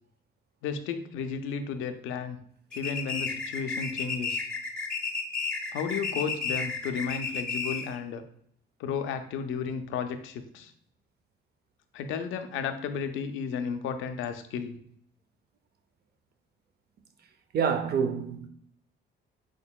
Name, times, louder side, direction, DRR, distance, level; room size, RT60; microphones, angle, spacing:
voice 1, 0.6-2.4 2.7-4.5 5.7-8.2 8.8-10.7 11.9-14.8, left 6 dB, 85° left, 0.4 m, -33 dB
sound 1, 2.7-8.0, left 4 dB, 5° left, 0.7 m, -32 dB
voice 2, 17.5-18.5, right 6 dB, 55° right, 0.5 m, -27 dB
3.9 x 3.7 x 2.2 m
cardioid pair, 90°, 20 cm